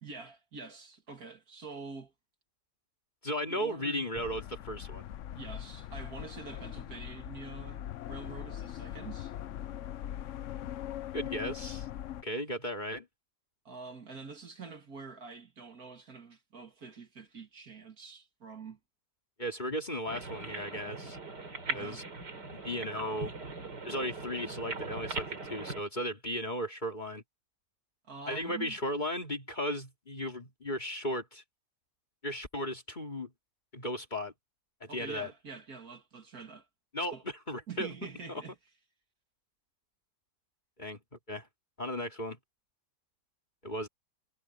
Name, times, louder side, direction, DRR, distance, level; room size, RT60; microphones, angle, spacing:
voice 1, 0.0-2.1 3.5-4.0 5.3-9.3 13.6-18.8 21.7-22.0 28.1-28.8 34.9-36.7 37.1-37.2 37.7-38.5, right 4 dB, 60° right, 2.7 m, -46 dB
voice 2, 3.2-5.0 11.1-11.9 12.2-13.1 19.4-21.2 21.7-22.0 22.5-23.3 23.8-27.2 28.3-31.4 32.2-33.3 33.7-34.3 34.8-35.3 36.9-37.9 38.3-38.4 40.8-41.0 41.3-41.5 41.8-42.4 43.6-43.9, equal, 25° left, 2.8 m, -36 dB
sound 1, 4.1-12.2, left 11 dB, 60° left, 0.8 m, -41 dB
sound 2, 20.1-25.8, right 3 dB, 80° right, 4.2 m, -40 dB
omnidirectional pair, 1.8 m